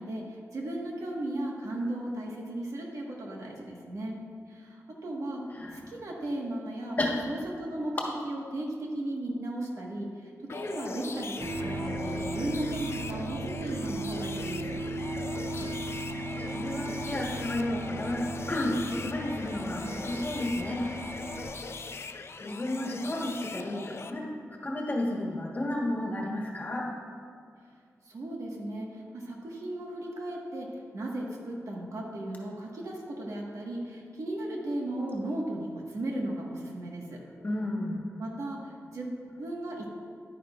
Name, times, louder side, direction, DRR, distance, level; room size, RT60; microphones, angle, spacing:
voice 1, 0.0-4.2 4.5-7.0 7.2-14.8 28.0-37.2 38.2-39.9, right 1 dB, 75° right, -2 dB, 1.4 m, -36 dB
sound 1, 10.5-24.1, left 4 dB, 50° left, 0.4 m, -41 dB
sound 2, 11.4-21.4, right 2 dB, 60° right, 1.8 m, -36 dB
voice 2, 16.4-20.9 22.4-24.3 24.6-26.9 37.4-38.0, left 1 dB, 30° left, -2 dB, 1.3 m, -32 dB
11.0 x 9.4 x 2.4 m, 2.1 s
wide cardioid pair, 155°, 6 cm